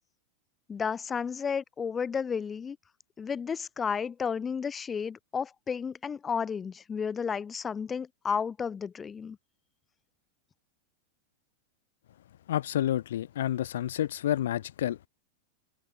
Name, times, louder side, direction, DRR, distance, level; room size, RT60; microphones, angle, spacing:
voice 1, 0.7-2.8 3.2-9.4, left 6 dB, 20° left, 1.3 m, -32 dB
voice 2, 12.5-15.1, left 11 dB, 60° left, 0.6 m, -29 dB
open air
figure-of-eight pair, 90°, 0 cm